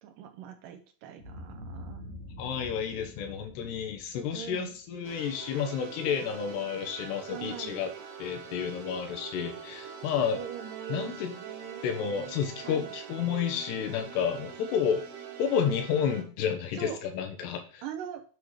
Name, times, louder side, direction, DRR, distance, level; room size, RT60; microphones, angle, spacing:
voice 1, 0.0-2.2 4.3-4.8 7.3-7.8 10.3-12.4 12.6-13.0 16.7-17.0 17.8-18.2, right 9 dB, 90° right, 6 dB, 1.9 m, -42 dB
Boom, 1.2-5.5, left 1 dB, 10° left, 2.3 m, -46 dB
voice 2, 2.4-7.9 8.2-10.4 10.9-11.3 11.8-15.0 15.4-17.8, left 7 dB, 75° left, 5 dB, 3.1 m, -31 dB
sound 1, 5.0-16.2, right 7 dB, 75° right, 3.2 m, -44 dB
8.7 x 4.8 x 4.9 m, 0.40 s
omnidirectional pair, 4.8 m